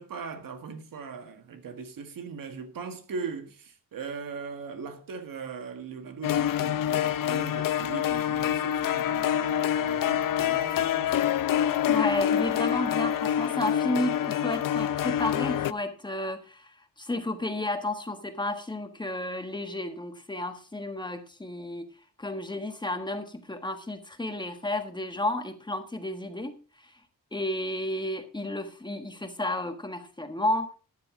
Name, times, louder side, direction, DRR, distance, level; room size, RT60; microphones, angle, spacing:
voice 1, 0.0-11.4, right 5 dB, 80° right, 1.8 m, -40 dB
sound 1, 6.2-15.7, left 10 dB, 75° left, 0.6 m, -26 dB
voice 2, 11.9-21.9 22.2-26.6 26.8-27.0 27.3-30.7, left 1 dB, 15° left, 1.5 m, -32 dB
13.0 x 9.8 x 3.8 m
wide cardioid pair, 120°, 33 cm